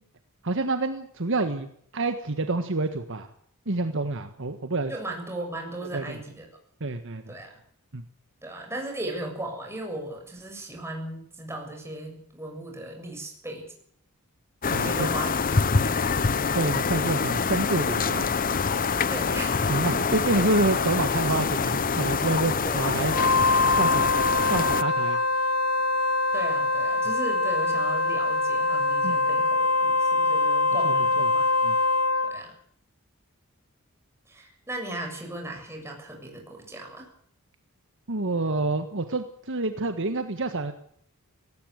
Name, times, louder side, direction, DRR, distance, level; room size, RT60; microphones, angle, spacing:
voice 1, 0.4-1.7 1.9-3.3 3.7-4.9 5.9-6.2 6.8-7.3 7.9-8.0 14.7-15.1 16.5-18.3 19.7-23.1 23.8-24.0 24.5-25.2 29.0-29.2 30.8-31.3 31.6-31.8 38.1-40.7, right 2 dB, 60° right, 8 dB, 1.5 m, -27 dB
voice 2, 4.9-6.5 7.3-7.6 8.4-13.7 14.8-15.4 15.8-16.2 19.1-19.9 22.6-22.9 26.3-31.5 32.2-32.5 34.3-37.1, right 1 dB, 10° right, 2 dB, 7.1 m, -37 dB
sound 1, 14.6-24.8, left 5 dB, 40° left, 0.8 m, -25 dB
Wind instrument woodwind instrument, 23.1-32.4, left 2 dB, 90° left, 4.1 m, -23 dB
18.5 x 18.0 x 8.1 m, 0.63 s
head